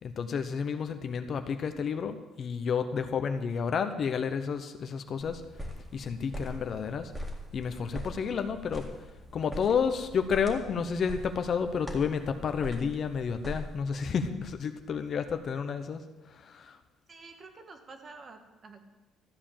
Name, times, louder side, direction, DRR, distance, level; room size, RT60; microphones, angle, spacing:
voice 1, 0.0-5.4 5.9-7.1 7.5-8.9 9.3-16.8, left 6 dB, 45° left, 8 dB, 0.8 m, -31 dB
sound 1, 5.2-13.8, equal, 10° right, 2.0 m, -42 dB
voice 2, 17.1-18.8, right 3 dB, 35° right, 5 dB, 1.5 m, -49 dB
13.5 x 5.1 x 8.9 m, 1.1 s
cardioid pair, 125°, 0 cm